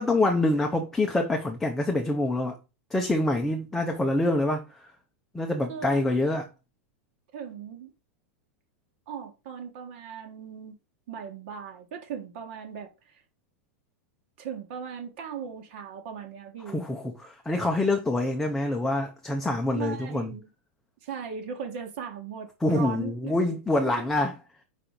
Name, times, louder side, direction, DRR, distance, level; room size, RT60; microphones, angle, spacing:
voice 1, 0.0-2.6 2.9-4.9 5.3-6.5 16.7-20.3 22.6-24.3, left 2 dB, 5° left, 0.6 m, -26 dB
voice 2, 5.7-6.1 7.3-7.9 9.1-10.7 11.1-13.2 14.4-16.8 19.7-20.5 21.0-23.4 23.8-23.9, right 7 dB, 55° right, 1.6 m, -38 dB
5.0 x 4.3 x 5.1 m
supercardioid pair, 160°, 7 cm